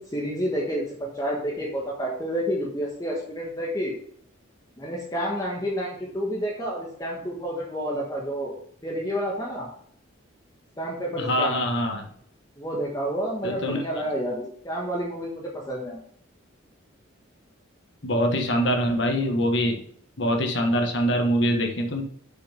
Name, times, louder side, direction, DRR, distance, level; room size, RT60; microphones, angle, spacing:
voice 1, 0.1-3.9 4.8-8.5 8.8-9.7 10.8-11.6 12.6-16.0, equal, 20° left, -2 dB, 1.4 m, -29 dB
voice 2, 11.2-12.0 13.4-13.8 18.0-19.8 20.2-22.0, equal, 60° left, 4 dB, 1.4 m, -24 dB
6.9 x 6.2 x 5.7 m, 0.62 s
head